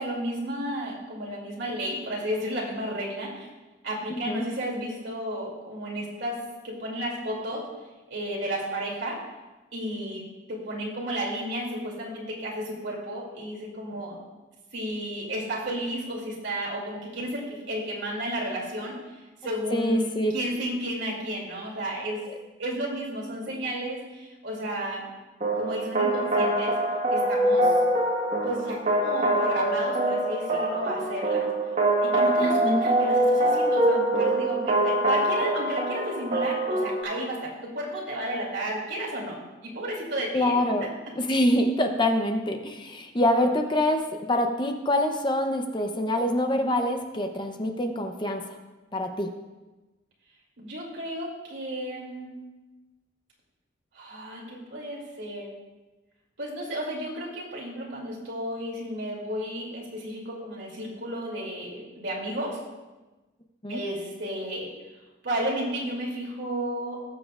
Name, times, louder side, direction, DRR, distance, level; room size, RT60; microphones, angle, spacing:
voice 1, 0.0-3.5 3.8-6.4 6.6-7.6 8.1-9.2 9.7-10.2 10.5-14.2 14.7-22.2 22.6-25.1 25.6-26.7 27.1-27.7 28.4-31.5 32.0-39.4 39.6-40.5 50.6-52.3 53.9-55.5 56.4-62.6 63.7-64.7 65.2-67.0, right 1 dB, 65° right, -3 dB, 2.7 m, -33 dB
voice 2, 19.7-20.3 32.4-32.9 40.3-48.6 48.9-49.3 63.6-63.8, left 1 dB, 25° left, 4 dB, 0.7 m, -25 dB
sound 1, 25.4-37.0, right 1 dB, 35° right, 1.4 m, -24 dB
19.0 x 7.6 x 2.4 m, 1.2 s
head